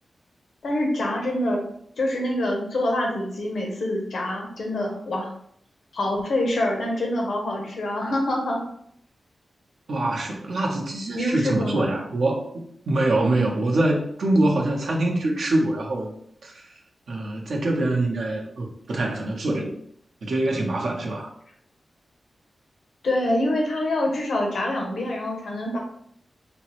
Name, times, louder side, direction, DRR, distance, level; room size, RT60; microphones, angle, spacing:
voice 1, 0.6-1.6 2.0-5.3 5.9-8.6 11.2-11.9 23.0-25.8, left 1 dB, 85° left, 0 dB, 0.7 m, -25 dB
voice 2, 9.9-16.1 16.4-16.5 17.1-19.7 20.2-21.3, right 2 dB, 80° right, 0 dB, 0.6 m, -24 dB
3.4 x 2.0 x 2.9 m, 0.67 s
wide cardioid pair, 85°, 0 cm